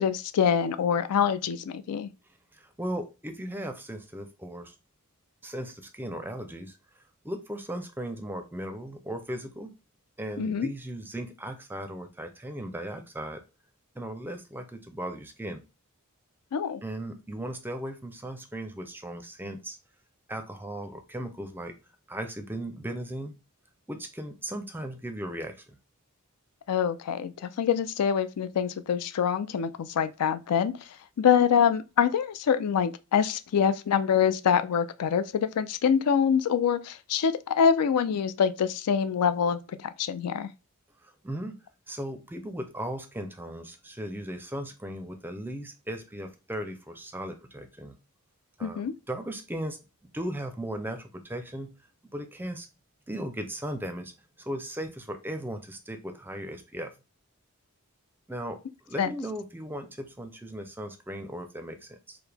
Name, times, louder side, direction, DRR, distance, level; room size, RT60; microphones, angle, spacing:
voice 1, 0.0-2.1 10.4-10.7 16.5-16.8 26.7-30.7 31.2-40.5 48.6-48.9 59.0-59.1, left 7 dB, 85° left, 0.4 m, -25 dB
voice 2, 2.5-4.7 5.4-6.7 7.2-9.7 10.2-13.4 14.0-15.6 16.8-19.8 20.3-21.7 22.1-23.4 23.9-25.8 41.0-41.6 41.9-47.9 48.6-49.8 50.1-51.7 52.1-52.7 53.1-54.1 54.4-56.9 58.3-58.6 58.9-62.2, right 1 dB, 10° right, 0.4 m, -37 dB
4.7 x 2.0 x 3.3 m
head